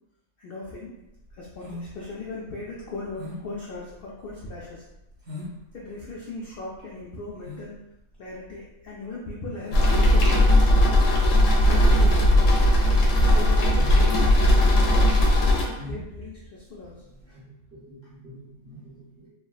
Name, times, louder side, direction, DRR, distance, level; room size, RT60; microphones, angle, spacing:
voice 1, 0.4-1.0 1.3-4.9 5.7-7.8 8.2-10.3 11.7-13.0 13.3-17.0, left 2 dB, 85° left, -5 dB, 0.5 m, -38 dB
sound 1, 1.0-17.3, left 2 dB, 65° right, 1.7 m, -43 dB
sound 2, 9.7-15.7, left 1 dB, 65° left, 1.0 m, -18 dB
voice 2, 17.2-19.3, right 1 dB, 45° right, -8 dB, 1.3 m, -48 dB
3.5 x 2.2 x 2.3 m, 0.91 s
omnidirectional pair, 1.5 m